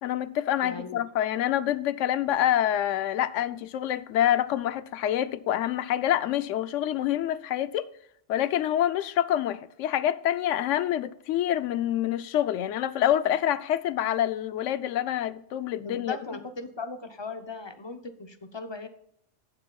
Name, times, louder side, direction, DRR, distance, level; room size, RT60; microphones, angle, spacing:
voice 1, 0.0-7.9 8.3-16.2, left 11 dB, 75° left, 0.9 m, -26 dB
voice 2, 0.6-1.0 15.8-18.9, left 3 dB, 30° left, 0.5 m, -38 dB
17.0 x 6.4 x 2.3 m
omnidirectional pair, 1.3 m